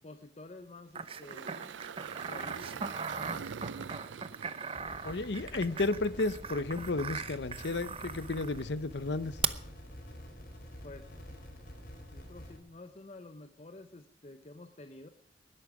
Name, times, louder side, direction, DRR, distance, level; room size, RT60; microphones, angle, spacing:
voice 1, 0.0-1.9 2.3-4.1 10.8-11.4 12.1-15.1, left 2 dB, 35° left, 9 dB, 0.8 m, -51 dB
sound 1, 0.9-8.6 9.4-9.5, right 6 dB, 30° right, 0.7 m, -39 dB
Engine, 1.0-6.2, right 6 dB, 85° right, 0.5 m, -44 dB
sound 2, 4.7-12.6, equal, 50° left, 4.2 m, -48 dB
voice 2, 5.0-9.4, left 2 dB, 70° left, 15 dB, 0.8 m, -33 dB
20.0 x 11.0 x 4.9 m, 0.67 s
head